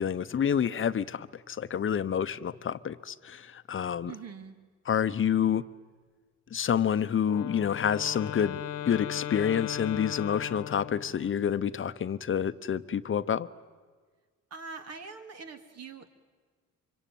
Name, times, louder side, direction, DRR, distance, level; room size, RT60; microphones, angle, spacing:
voice 1, 0.0-4.1 4.9-5.6 6.5-8.6 8.9-13.5, left 8 dB, 40° left, 13 dB, 0.9 m, -28 dB
voice 2, 4.1-4.6 14.5-16.1, right 5 dB, 55° right, 7 dB, 2.5 m, -43 dB
Wind instrument woodwind instrument, 7.2-11.3, left 11 dB, 85° left, 1.4 m, -37 dB
25.5 x 23.5 x 9.3 m, 1.5 s
cardioid pair, 90°, 30 cm